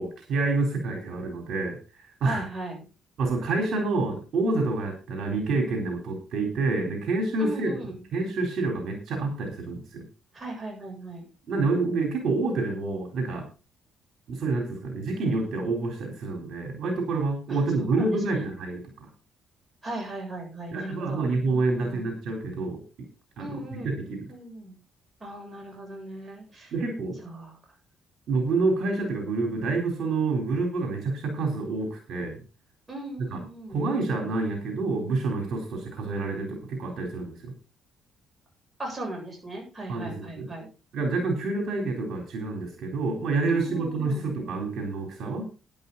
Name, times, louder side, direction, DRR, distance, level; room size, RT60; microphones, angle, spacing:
voice 1, 0.0-2.4 3.2-7.7 8.1-10.0 11.5-13.5 14.3-19.1 20.7-22.8 23.4-24.3 26.7-27.2 28.3-32.4 33.3-33.4 33.7-37.5 39.9-40.5 40.9-45.4, right 3 dB, 65° right, 2 dB, 4.0 m, -28 dB
voice 2, 2.2-2.8 7.4-8.0 10.3-11.3 17.5-18.5 19.8-22.1 23.4-24.0 24.3-24.8 25.2-26.7 27.2-27.6 32.9-33.8 38.8-40.7 43.5-44.3, right 2 dB, 25° right, 1 dB, 7.7 m, -38 dB
12.0 x 11.0 x 4.1 m, 0.32 s
cardioid pair, 90°, 0 cm